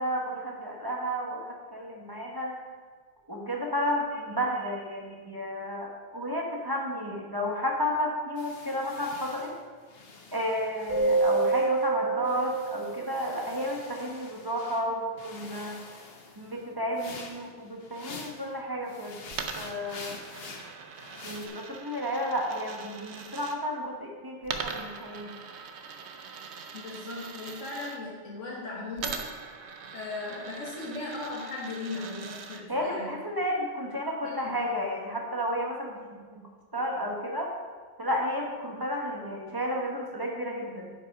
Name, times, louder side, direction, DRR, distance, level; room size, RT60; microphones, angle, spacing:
voice 1, 0.0-2.6 3.3-9.5 10.3-15.8 16.4-19.2 19.6-20.2 21.2-25.3 32.7-36.0 36.3-36.5 36.7-37.5 38.0-40.9, equal, 20° right, -1 dB, 1.1 m, -32 dB
sound 1, 8.4-11.9 12.2-14.8 15.2-18.5 18.8-21.5, left 3 dB, 55° left, 1.2 m, -47 dB
Keyboard (musical), 10.9-13.6, right 3 dB, 40° left, 1.9 m, -27 dB
Coin (dropping), 19.3-23.6 24.4-28.0 29.0-32.6, right 6 dB, 65° right, 1.0 m, -41 dB
voice 2, 26.7-29.2 29.9-33.2 34.2-34.6, left 3 dB, 85° left, -4 dB, 1.7 m, -37 dB
9.4 x 5.7 x 4.9 m, 1.5 s
omnidirectional pair, 1.3 m